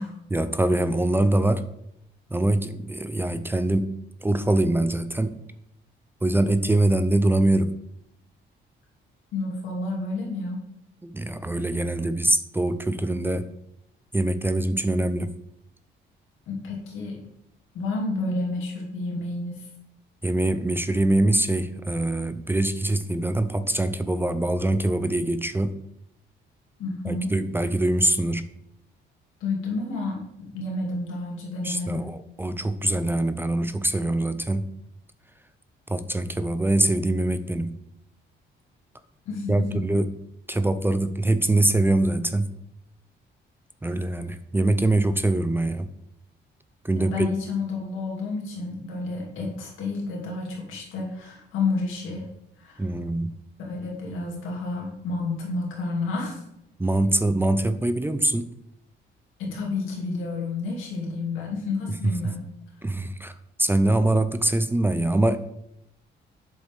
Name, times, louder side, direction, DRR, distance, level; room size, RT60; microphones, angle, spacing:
voice 1, 0.3-1.6 2.3-3.9 4.2-5.4 6.2-7.7 11.0-13.5 14.1-15.3 20.2-25.7 27.0-28.5 31.6-34.6 35.9-37.8 39.5-40.1 40.5-42.5 43.8-45.9 46.8-47.3 52.8-53.3 56.8-58.5 61.9-62.1 62.8-63.3 63.6-65.4, right 1 dB, 10° right, 11 dB, 0.5 m, -23 dB
voice 2, 9.3-10.6 16.5-17.2 17.7-19.7 26.8-27.4 29.4-32.1 39.3-39.5 47.0-52.3 52.6-52.8 53.6-56.4 59.4-62.4, left 3 dB, 90° left, -1 dB, 2.5 m, -30 dB
8.2 x 6.6 x 3.5 m, 0.80 s
cardioid pair, 90°, 20 cm